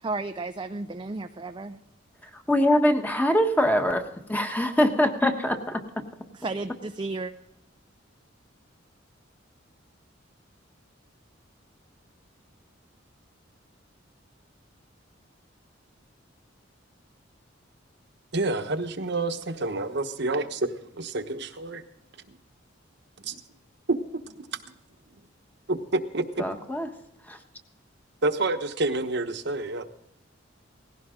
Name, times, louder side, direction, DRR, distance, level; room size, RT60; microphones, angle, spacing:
voice 1, 0.0-1.8 6.4-7.3, right 3 dB, 25° right, 7 dB, 0.5 m, -33 dB
voice 2, 2.2-4.0 4.3-5.8 26.4-26.9 27.3-27.4, equal, 10° left, 5 dB, 1.3 m, -23 dB
voice 3, 18.3-21.8 22.3-22.4 23.2-23.4 24.3-24.6 25.7-26.4 28.2-29.8, right 2 dB, 60° right, 7 dB, 1.2 m, -29 dB
18.5 x 16.0 x 3.8 m, 0.80 s
head